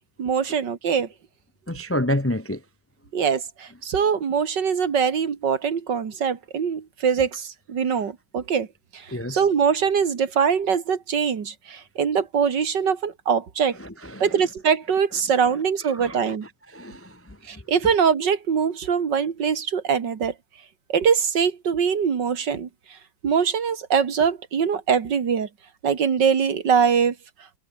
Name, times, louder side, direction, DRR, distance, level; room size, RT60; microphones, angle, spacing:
voice 1, 0.2-1.1 3.1-8.7 8.9-13.8 14.2-16.5 17.4-20.3 20.9-23.0 23.2-25.5 25.8-27.2, right 6 dB, 65° right, 2.5 m, -23 dB
voice 2, 1.7-2.6 9.1-9.5 13.7-14.4 15.1-15.2 15.8-17.6, left 1 dB, 15° left, 0.4 m, -30 dB
omnidirectional pair, 2.1 m